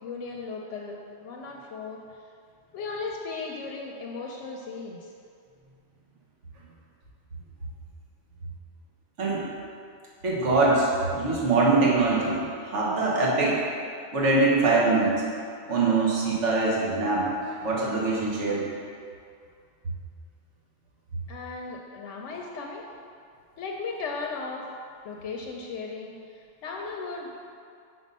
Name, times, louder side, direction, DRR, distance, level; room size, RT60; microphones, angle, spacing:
voice 1, 0.0-2.0 2.7-5.1 21.3-22.8 23.6-24.7 25.0-27.3, left 4 dB, 90° left, -1 dB, 0.9 m, -36 dB
voice 2, 10.2-13.6 14.1-15.1 15.7-17.3 17.6-18.6, right 3 dB, 80° right, -5 dB, 1.5 m, -23 dB
5.2 x 4.3 x 5.3 m, 2.3 s
omnidirectional pair, 1.2 m